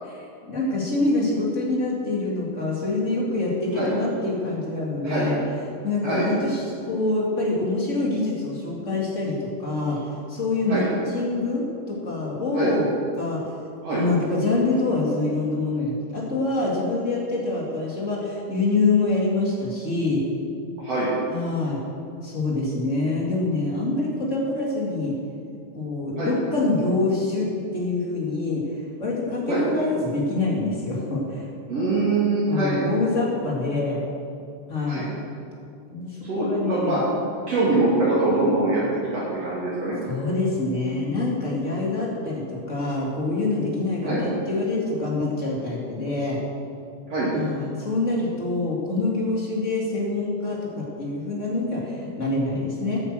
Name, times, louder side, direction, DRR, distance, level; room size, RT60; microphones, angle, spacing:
voice 1, 0.1-5.4 5.8-10.0 10.3-12.9 13.1-13.4 13.9-20.2 21.3-21.8 22.2-25.1 25.7-27.5 27.7-28.6 29.0-31.4 32.5-34.0 34.7-35.1 35.9-37.0 40.1-46.4 47.3-53.0, left 2 dB, 25° left, -4 dB, 2.4 m, -25 dB
voice 2, 31.7-32.8 34.8-35.0 36.2-37.0 37.5-40.0 44.0-44.2 47.1-47.3, right 2 dB, 50° right, -9 dB, 3.4 m, -23 dB
10.5 x 8.8 x 7.9 m, 2.5 s
omnidirectional pair, 3.8 m